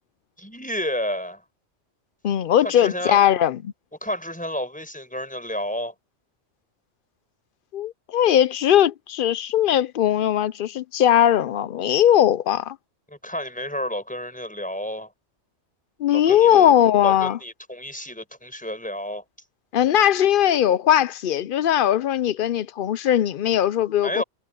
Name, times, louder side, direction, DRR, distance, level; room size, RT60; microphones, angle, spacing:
voice 1, 0.4-1.4 2.6-3.3 4.0-5.9 13.1-15.1 16.1-16.7 17.0-19.2 24.0-24.2, left 1 dB, 5° left, 5.1 m, -30 dB
voice 2, 2.2-3.7 7.7-12.8 16.0-17.4 19.7-24.2, left 10 dB, 60° left, 0.6 m, -19 dB
omnidirectional pair, 1.2 m